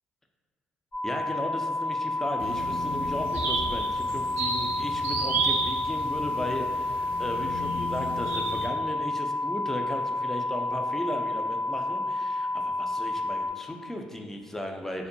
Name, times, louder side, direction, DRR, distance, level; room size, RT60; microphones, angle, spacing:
sound 1, 0.9-13.5, left 2 dB, 65° left, 1.1 m, -30 dB
voice 1, 1.0-15.1, left 1 dB, 10° left, 2 dB, 0.3 m, -36 dB
sound 2, 2.4-8.7, right 3 dB, 80° right, 0.4 m, -32 dB
2.6 x 2.1 x 2.6 m, 1.5 s
supercardioid pair, 70°, 4 cm